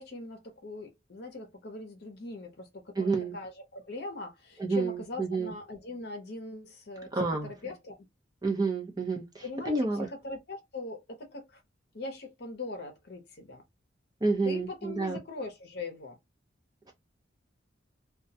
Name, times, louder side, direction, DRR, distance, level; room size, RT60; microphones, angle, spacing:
voice 1, 0.0-8.0 9.4-11.6 11.9-13.6 14.4-16.2, left 3 dB, 60° left, 0.7 m, -41 dB
voice 2, 3.0-3.3 4.6-5.5 7.1-7.5 8.4-10.1 14.2-15.2, right 3 dB, 20° right, 0.6 m, -29 dB
2.3 x 2.1 x 2.7 m
head